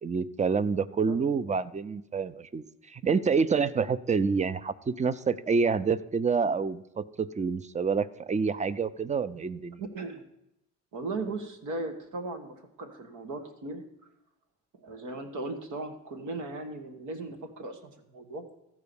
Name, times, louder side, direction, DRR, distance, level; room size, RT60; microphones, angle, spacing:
voice 1, 0.0-9.8, right 5 dB, 25° right, 16 dB, 0.5 m, -28 dB
voice 2, 9.8-10.2 10.9-13.8 14.8-18.4, right 2 dB, 80° right, 6 dB, 1.7 m, -37 dB
14.0 x 4.8 x 7.0 m, 0.86 s
cardioid pair, 90°, 30 cm